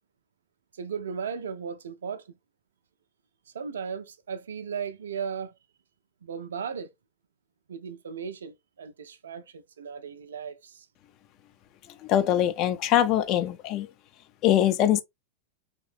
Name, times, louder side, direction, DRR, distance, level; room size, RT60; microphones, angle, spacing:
voice 1, 0.7-2.3 3.5-5.5 6.2-6.9 7.7-10.9, right 6 dB, 65° right, 0.4 m, -36 dB
voice 2, 12.0-13.9 14.4-15.0, left 11 dB, 40° left, 0.4 m, -23 dB
3.1 x 2.9 x 2.5 m
figure-of-eight pair, 90°, 0 cm